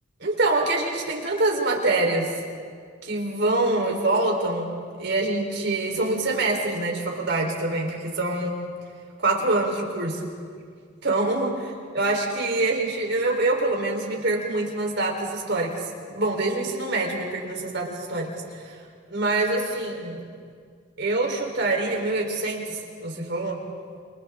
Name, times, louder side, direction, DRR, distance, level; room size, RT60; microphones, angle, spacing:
voice 1, 0.2-2.3 3.0-8.6 9.2-10.3 11.0-18.8 19.1-20.2 21.0-23.6, right 2 dB, 65° right, 0 dB, 4.0 m, -25 dB
28.5 x 28.0 x 3.7 m, 2.1 s
head